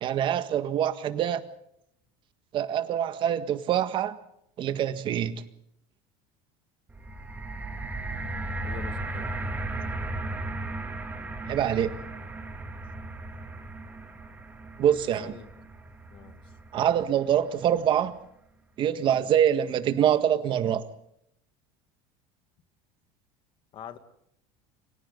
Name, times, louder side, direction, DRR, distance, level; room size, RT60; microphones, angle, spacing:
voice 1, 0.0-1.4 2.5-4.2 4.6-5.4 11.5-12.0 14.8-15.3 16.7-18.2 18.8-20.9, right 10 dB, 40° right, 1.7 m, -25 dB
sound 1, 6.9-17.1 17.9-18.0, right 2 dB, 15° right, 2.7 m, -36 dB
voice 2, 8.6-9.4 15.2-15.5 16.1-16.4 19.0-19.3 23.7-24.0, left 9 dB, 40° left, 2.2 m, -44 dB
29.5 x 24.5 x 4.0 m
cardioid pair, 140°, 13 cm